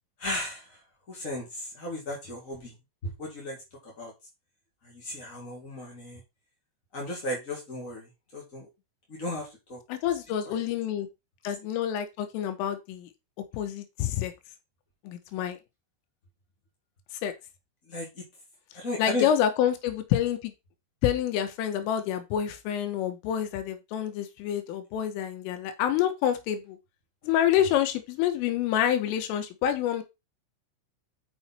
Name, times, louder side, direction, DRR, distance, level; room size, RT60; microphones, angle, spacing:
voice 1, 0.2-0.8 1.1-2.7 3.2-3.6 3.8-4.1 4.8-6.2 6.9-8.7 9.1-9.8 10.4-10.6 17.9-18.2 18.7-19.3, left 2 dB, 40° left, -2 dB, 1.1 m, -35 dB
voice 2, 9.9-11.1 11.5-13.1 13.5-14.3 15.1-15.6 17.2-17.3 19.0-20.5 21.0-26.8 27.2-30.0, left 10 dB, 90° left, 7 dB, 3.7 m, -27 dB
7.0 x 6.3 x 4.3 m, 0.24 s
omnidirectional pair, 5.7 m